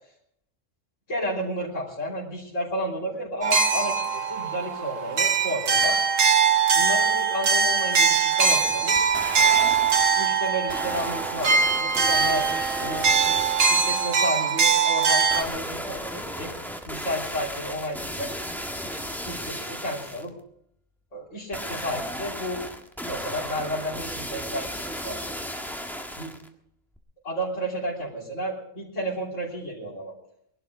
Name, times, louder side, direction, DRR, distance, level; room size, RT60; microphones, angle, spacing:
voice 1, 1.1-6.0 6.7-9.1 10.1-12.5 12.8-13.1 13.7-16.5 16.9-18.3 19.2-20.3 21.1-22.6 23.0-25.2 26.2-26.3 27.2-30.1, equal, 70° left, -7 dB, 3.8 m, -32 dB
sound 1, 3.4-15.4, right 5 dB, 80° right, 1.5 m, -22 dB
sound 2, 9.0-10.3 10.7-14.3 15.3-20.3 21.5-26.5 27.0-27.1, equal, ahead, 1.6 m, -35 dB
21.5 x 12.0 x 4.8 m, 0.71 s
omnidirectional pair, 1.3 m